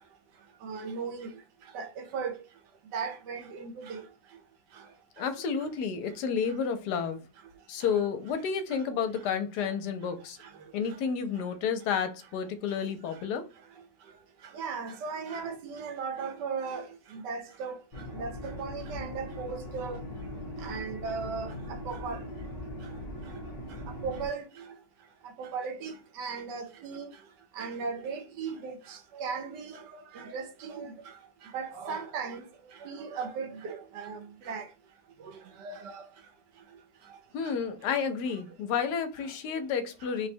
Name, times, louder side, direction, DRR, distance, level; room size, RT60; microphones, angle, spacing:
voice 1, 0.6-1.3 1.7-2.3 2.9-4.0 14.5-16.9 17.1-17.8 18.1-20.0 20.6-21.5 21.9-22.2 24.0-24.4 25.4-27.1 27.6-29.7 30.1-30.9 31.5-32.4 32.8-34.2 34.5-34.6 35.6-36.0, right 5 dB, 85° right, 1.3 m, -36 dB
voice 2, 5.2-7.2 7.7-10.4 10.7-13.5 37.3-40.3, left 6 dB, 80° left, 1.1 m, -31 dB
sound 1, 17.9-24.3, left 1 dB, 50° left, 0.4 m, -40 dB
3.1 x 2.1 x 4.2 m
omnidirectional pair, 1.8 m